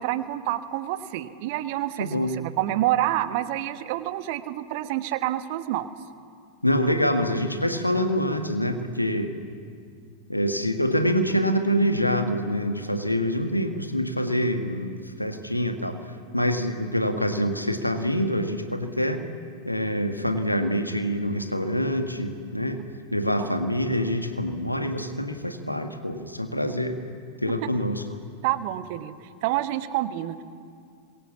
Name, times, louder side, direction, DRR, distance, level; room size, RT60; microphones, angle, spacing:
voice 1, 0.0-5.9 23.4-23.5 27.4-27.5 28.4-30.4, right 14 dB, 50° right, 11 dB, 1.2 m, -28 dB
voice 2, 2.0-2.4 6.6-9.3 10.3-16.0 16.3-19.2 19.7-22.8 23.1-26.9 27.4-28.0, equal, 85° left, 6 dB, 1.8 m, -25 dB
26.0 x 22.5 x 7.3 m, 2.3 s
figure-of-eight pair, 90°, 0 cm